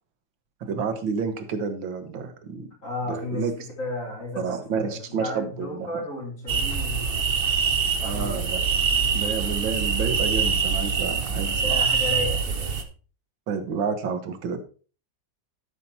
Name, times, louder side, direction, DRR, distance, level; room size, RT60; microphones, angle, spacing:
voice 1, 0.6-2.7 3.1-3.5 4.4-6.0 8.0-8.6 9.1-11.8 13.5-14.6, right 5 dB, 85° right, 9 dB, 2.0 m, -30 dB
voice 2, 2.8-7.3 8.0-8.8 11.4-12.8, left 1 dB, 40° left, -3 dB, 4.5 m, -34 dB
sound 1, 6.5-12.8, right 5 dB, 40° right, 0.9 m, -24 dB
12.5 x 5.6 x 4.3 m, 0.38 s
omnidirectional pair, 2.0 m